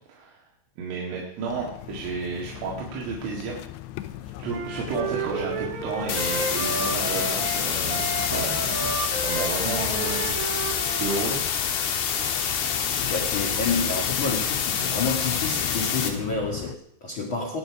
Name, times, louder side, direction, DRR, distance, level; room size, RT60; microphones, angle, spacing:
voice 1, 0.1-0.4 0.8-3.6 4.2-10.4 11.0-11.4, right 4 dB, 85° right, -3 dB, 4.4 m, -32 dB
sound 1, 1.5-16.8, left 14 dB, 80° left, 2.4 m, -38 dB
Wind instrument woodwind instrument, 4.5-11.3, right 4 dB, 50° right, 2.8 m, -32 dB
sound 2, 6.1-16.1, left 8 dB, 65° left, 2.9 m, -27 dB
voice 2, 12.9-17.6, left 3 dB, 40° left, -3 dB, 2.0 m, -29 dB
21.5 x 8.8 x 4.9 m, 0.69 s
omnidirectional pair, 5.4 m